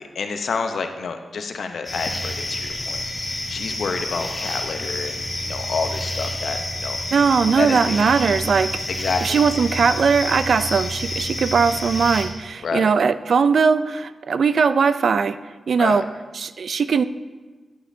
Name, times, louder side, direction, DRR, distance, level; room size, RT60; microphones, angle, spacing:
voice 1, 0.0-3.0 3.5-7.0 7.6-7.9 8.9-9.4 12.6-12.9 15.8-16.1, left 4 dB, 75° left, 6 dB, 0.7 m, -28 dB
sound 1, 1.8-12.2, left 1 dB, 30° left, 2.1 m, -29 dB
voice 2, 7.1-8.7 9.2-15.4 15.7-16.1 16.3-17.0, right 5 dB, 70° right, 14 dB, 0.3 m, -19 dB
11.0 x 8.2 x 2.7 m, 1.3 s
cardioid pair, 70°, 0 cm